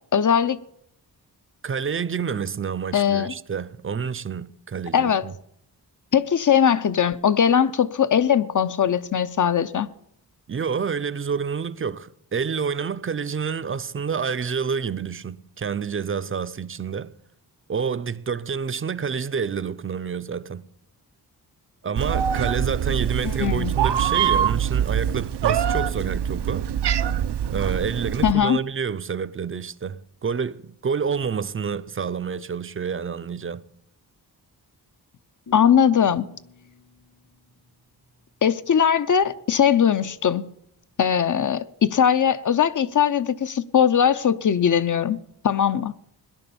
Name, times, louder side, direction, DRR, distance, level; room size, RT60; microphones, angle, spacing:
voice 1, 0.1-0.6 2.9-3.3 4.9-5.2 6.1-9.9 23.2-23.7 28.2-28.6 35.5-36.2 38.4-40.5 41.0-45.2 45.4-45.9, left 8 dB, 50° left, 0.7 m, -20 dB
voice 2, 1.6-5.3 10.5-17.1 17.7-20.6 21.8-26.7 27.5-33.6, right 6 dB, 35° right, 0.5 m, -28 dB
Meow, 22.0-28.3, right 9 dB, 90° right, 0.7 m, -24 dB
sound 1, 35.5-38.4, left 8 dB, 70° left, 5.5 m, -46 dB
18.5 x 11.0 x 7.0 m
wide cardioid pair, 170°, 39 cm